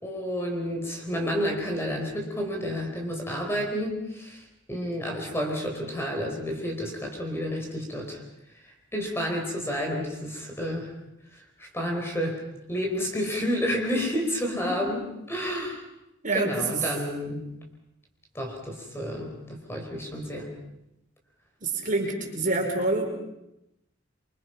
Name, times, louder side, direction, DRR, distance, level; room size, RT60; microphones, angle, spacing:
voice 1, 0.0-8.2 8.9-10.9 11.6-12.4 12.7-15.8 16.3-17.5 18.3-20.5, equal, 15° left, 1 dB, 4.5 m, -30 dB
voice 2, 16.2-16.8 21.6-23.1, right 3 dB, 40° right, 1 dB, 5.1 m, -27 dB
27.5 x 24.5 x 5.8 m, 0.86 s
head